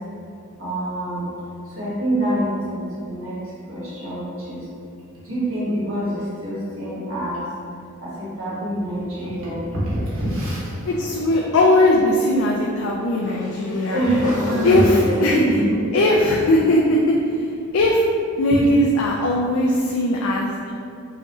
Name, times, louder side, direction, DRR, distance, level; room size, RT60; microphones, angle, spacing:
voice 1, 0.6-1.3 1.7-3.4 3.7-4.6 5.2-7.4 8.0-11.4 13.9-15.9 18.6-18.7, equal, 65° right, -9 dB, 1.4 m, -25 dB
voice 2, 10.9-14.0 14.6-15.4 15.9-17.4 17.7-18.0 18.4-20.7, left 1 dB, 70° left, -2 dB, 0.4 m, -19 dB
Motorcycle / Engine, 11.3-17.4, equal, 35° left, 1.0 m, -36 dB
5.5 x 2.6 x 3.0 m, 2.4 s
head